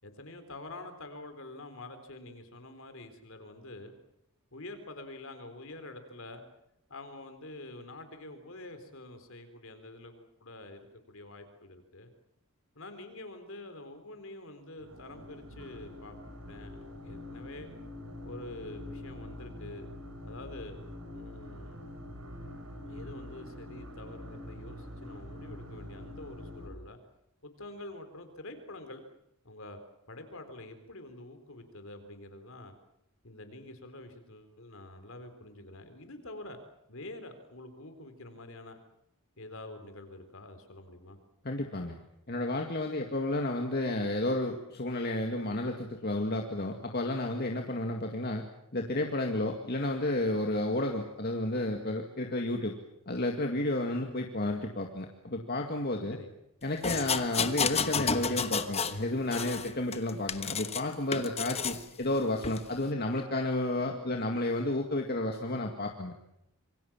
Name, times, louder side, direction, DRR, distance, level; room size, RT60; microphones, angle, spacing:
voice 1, 0.0-3.9 4.5-6.4 6.9-12.1 12.7-16.2 16.4-17.7 18.2-19.9 20.3-20.8 21.1-21.8 22.9-27.0 27.4-29.0 29.4-29.8 30.1-32.7 33.2-36.6 36.9-38.8 39.4-41.2 56.1-56.3 59.5-59.7, left 2 dB, 60° left, 8 dB, 4.1 m, -46 dB
sound 1, 14.8-26.7, left 1 dB, 80° right, 5.2 m, -45 dB
voice 2, 41.4-42.0 42.3-48.4 48.7-52.7 53.1-56.2 56.6-66.1, left 1 dB, 45° left, 3 dB, 2.1 m, -31 dB
sound 2, 56.8-59.0 59.3-60.8 61.1-61.8 62.4-62.6, left 6 dB, 30° left, 1.2 m, -31 dB
27.0 x 24.0 x 7.4 m, 0.81 s
head